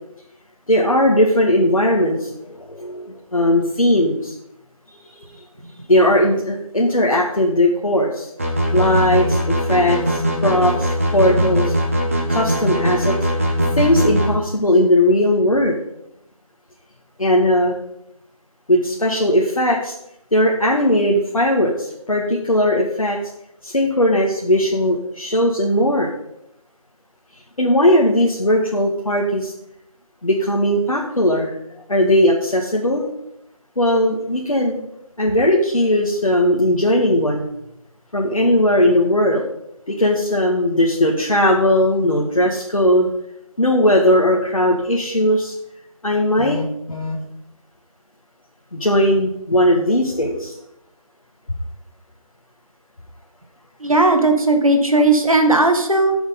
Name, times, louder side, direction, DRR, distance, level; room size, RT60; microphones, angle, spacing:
voice 1, 0.7-4.3 5.2-5.3 5.9-8.3 8.7-11.7 12.3-13.5 13.8-15.8 17.2-17.8 18.7-19.9 20.3-23.2 23.6-26.1 27.6-29.5 30.2-31.5 31.9-33.1 33.8-34.8 35.2-37.5 38.1-39.4 39.9-43.1 43.6-45.5 46.0-47.2 48.7-50.5, left 1 dB, 70° left, -2 dB, 1.6 m, -18 dB
sound 1, 8.4-14.3, equal, 25° right, 1.2 m, -20 dB
voice 2, 53.8-56.2, right 2 dB, 75° right, 5 dB, 1.8 m, -16 dB
13.5 x 7.1 x 3.8 m, 0.80 s
figure-of-eight pair, 170°, 18 cm